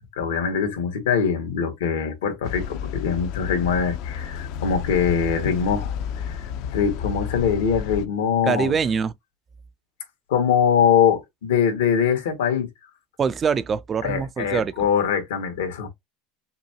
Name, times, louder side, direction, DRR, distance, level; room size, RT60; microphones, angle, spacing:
voice 1, 0.2-5.9 6.2-6.3 6.7-8.8 10.3-12.7 14.0-15.9, left 7 dB, 90° left, 1.9 m, -22 dB
sound 1, 2.4-8.1, left 7 dB, 65° left, 0.8 m, -31 dB
voice 2, 8.4-9.1 13.2-14.7, right 6 dB, 30° right, 0.5 m, -24 dB
5.7 x 2.2 x 2.9 m
supercardioid pair, 100°, 0 cm